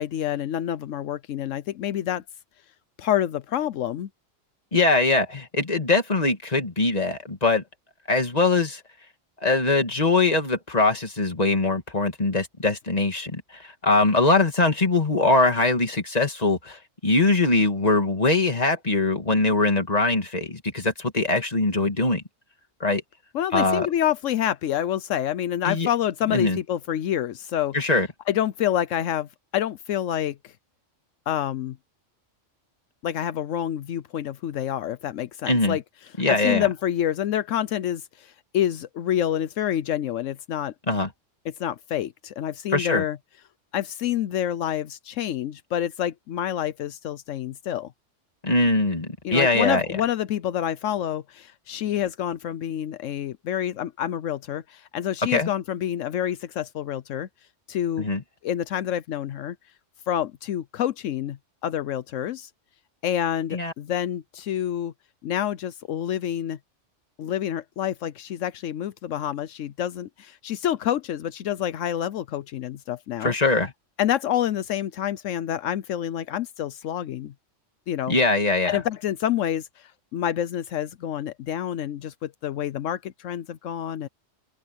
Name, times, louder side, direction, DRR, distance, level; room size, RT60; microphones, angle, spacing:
voice 1, 0.0-2.2 3.0-4.1 23.3-27.8 28.3-30.4 31.3-31.8 33.0-35.8 36.3-40.7 41.4-43.2 43.7-47.9 49.2-57.3 57.7-58.1 58.4-59.6 60.1-62.5 63.0-64.9 65.2-66.6 67.2-73.3 74.0-77.3 77.9-78.2 78.7-84.1, left 11 dB, 80° left, 1.0 m, -27 dB
voice 2, 4.7-7.6 8.1-8.8 9.4-22.2 22.8-23.0 23.5-23.9 25.6-25.9 26.3-26.6 27.7-28.1 35.5-35.8 36.2-36.7 40.9-41.1 42.7-43.0 48.4-49.9 55.3-55.5 58.0-58.2 63.5-63.7 73.2-73.7 78.1-78.8, left 2 dB, 30° left, 2.3 m, -22 dB
omnidirectional pair, 1.3 m